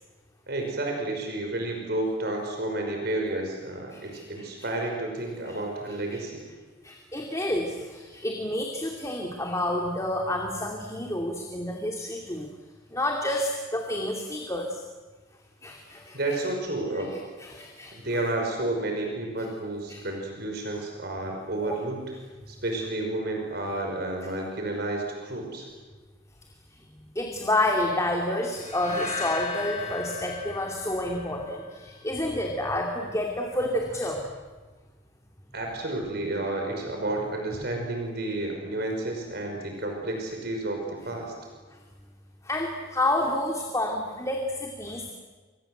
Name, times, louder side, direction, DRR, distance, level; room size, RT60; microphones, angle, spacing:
voice 1, 0.5-6.4 16.1-17.1 17.9-22.0 22.5-25.7 35.5-41.3, right 2 dB, 55° right, 2 dB, 5.5 m, -31 dB
voice 2, 3.9-4.5 5.5-5.6 6.1-6.2 6.8-12.5 12.9-14.8 15.6-16.4 16.9-17.1 17.4-18.0 19.9-20.0 21.6-21.8 26.7-26.8 27.1-34.3 42.4-45.1, left 1 dB, 15° left, 1 dB, 2.6 m, -29 dB
sound 1, 28.5-31.7, left 4 dB, 40° left, 7.8 m, -36 dB
29.5 x 25.5 x 8.0 m, 1.4 s
head